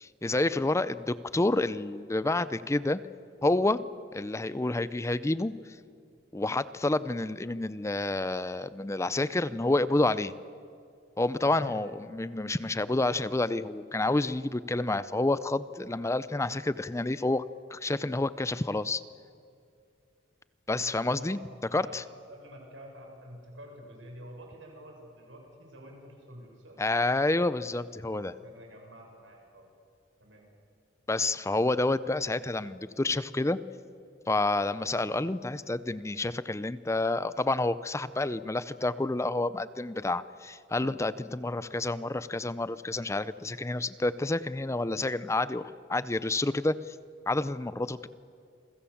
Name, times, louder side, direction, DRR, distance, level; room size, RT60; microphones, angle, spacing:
voice 1, 0.0-3.0 3.4-3.8 4.1-5.5 6.3-10.3 11.2-17.4 17.7-19.0 20.7-21.4 21.7-22.0 26.8-28.3 31.1-33.6 34.3-46.9 47.3-48.1, left 2 dB, 15° left, 15 dB, 0.5 m, -29 dB
voice 2, 11.5-11.8 21.1-26.8 28.1-29.7 30.2-30.4, equal, 80° right, 0 dB, 7.5 m, -48 dB
28.5 x 23.0 x 7.3 m, 2.5 s
head